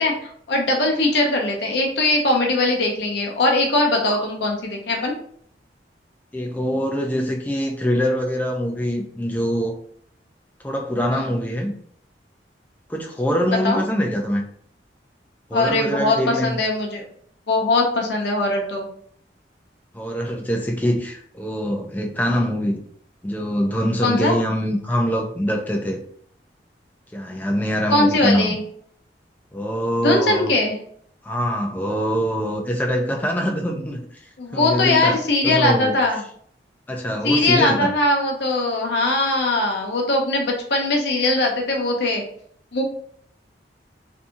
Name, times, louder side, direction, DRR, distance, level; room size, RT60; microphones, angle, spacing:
voice 1, 0.0-5.2 11.1-11.2 13.6-13.8 15.5-17.0 17.5-18.9 24.0-24.4 27.9-28.6 30.0-30.8 34.4-36.2 37.2-42.2 42.7-42.8, left 2 dB, 70° left, 1 dB, 0.6 m, -20 dB
voice 2, 6.3-9.7 10.6-11.8 12.9-14.4 15.5-16.6 19.9-22.8 23.2-26.0 27.1-28.6 29.5-30.5 31.2-34.2 34.5-36.0 36.9-37.9, equal, 10° left, 1 dB, 0.3 m, -24 dB
2.6 x 2.6 x 2.3 m, 0.63 s
head